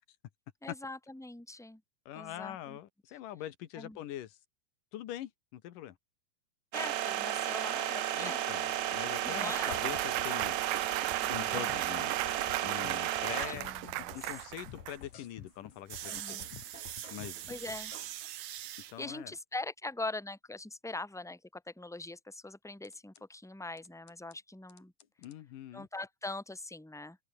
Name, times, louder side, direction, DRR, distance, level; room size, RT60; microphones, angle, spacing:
voice 1, 0.6-1.8 2.1-2.8 3.7-4.0 6.7-8.4 9.2-9.8 11.2-11.7 13.5-14.2 16.1-16.4 17.0-17.2 17.5-17.9 19.0-24.9 25.7-27.2, left 2 dB, ahead, 3.1 m, -42 dB
voice 2, 2.1-4.4 4.9-6.0 8.1-10.6 11.3-12.2 12.6-16.4 17.1-17.5 18.9-19.3 25.2-25.9, left 12 dB, 85° left, 3.0 m, -43 dB
sound 1, 6.7-13.7 15.9-18.9, right 12 dB, 70° right, 2.4 m, -35 dB
Clapping / Cheering / Applause, 8.7-15.0, right 20 dB, 85° right, 2.1 m, -38 dB
sound 2, 9.7-10.6 10.9-14.4 14.7-18.1 22.8-23.2 23.8-24.4 24.7-25.4, left 9 dB, 65° left, 3.0 m, -51 dB
omnidirectional pair, 3.7 m